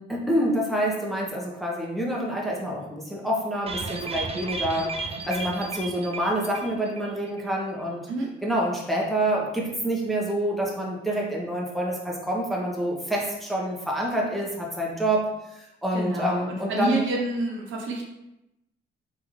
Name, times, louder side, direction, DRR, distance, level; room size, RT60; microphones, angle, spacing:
voice 1, 0.0-8.1 8.4-17.0, right 1 dB, ahead, -4 dB, 1.1 m, -27 dB
sound 1, 3.7-7.1 7.4-7.5 7.8-7.9, right 3 dB, 30° right, 0.5 m, -34 dB
voice 2, 15.9-18.0, right 2 dB, 80° right, -1 dB, 1.0 m, -28 dB
3.7 x 3.6 x 3.2 m, 0.90 s
cardioid pair, 90°, 20 cm